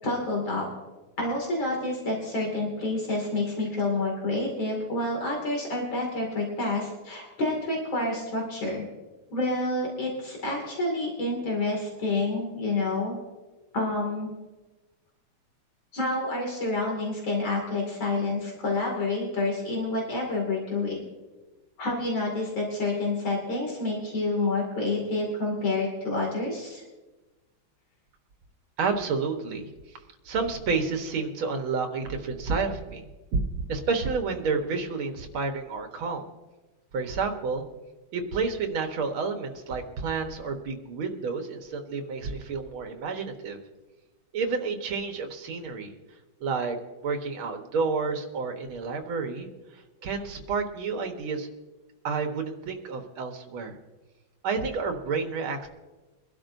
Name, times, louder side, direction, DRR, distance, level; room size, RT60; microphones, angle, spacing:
voice 1, 0.0-0.7 1.2-8.8 9.3-13.2 13.7-14.3 15.9-21.0 21.8-26.8, left 2 dB, 70° left, -1 dB, 3.2 m, -28 dB
voice 2, 28.8-29.7 30.3-33.0 33.3-36.2 36.9-37.7 38.1-43.6 44.3-45.9 46.4-46.8 47.0-51.5 52.0-53.8 54.4-55.7, right 4 dB, 80° right, 5 dB, 2.1 m, -30 dB
24.0 x 12.0 x 2.7 m, 1.2 s
omnidirectional pair, 2.2 m